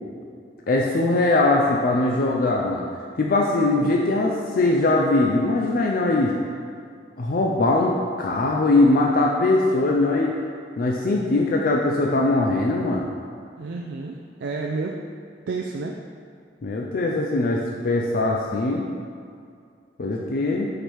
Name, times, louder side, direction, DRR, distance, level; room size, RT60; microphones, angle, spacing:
voice 1, 0.7-2.9 3.2-6.3 7.2-10.4 10.8-13.1 16.6-18.8 20.0-20.7, left 2 dB, 55° left, -1 dB, 0.4 m, -21 dB
voice 2, 13.6-15.0 15.5-16.0 20.4-20.5, right 3 dB, 75° right, 0 dB, 0.4 m, -30 dB
5.1 x 4.3 x 4.6 m, 2.3 s
head